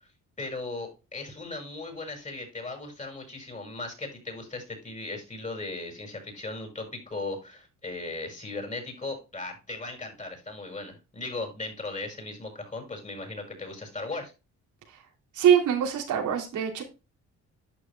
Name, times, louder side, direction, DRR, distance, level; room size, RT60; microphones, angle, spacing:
voice 1, 0.4-14.3, left 3 dB, 25° left, 4 dB, 5.6 m, -37 dB
voice 2, 15.3-16.8, right 9 dB, 80° right, 2 dB, 2.8 m, -23 dB
11.5 x 7.0 x 2.2 m, 0.28 s
cardioid pair, 90°, 30 cm